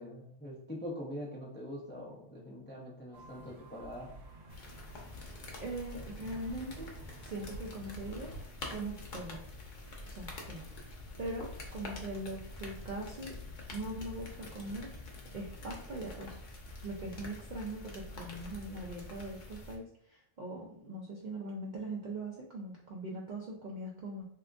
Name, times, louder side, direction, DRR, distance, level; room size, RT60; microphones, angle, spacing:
voice 1, 0.0-4.1, equal, 15° left, -3 dB, 0.3 m, -43 dB
sound 1, 3.1-8.5, right 1 dB, 75° right, 1.1 m, -50 dB
sound 2, 4.5-19.8, left 2 dB, 50° left, 0.7 m, -46 dB
voice 2, 5.6-6.9 7.2-8.3 8.7-9.4 10.1-13.4 13.7-14.9 15.3-16.4 16.8-24.3, right 2 dB, 60° right, -3 dB, 0.5 m, -41 dB
3.4 x 2.8 x 2.4 m, 0.68 s
omnidirectional pair, 1.3 m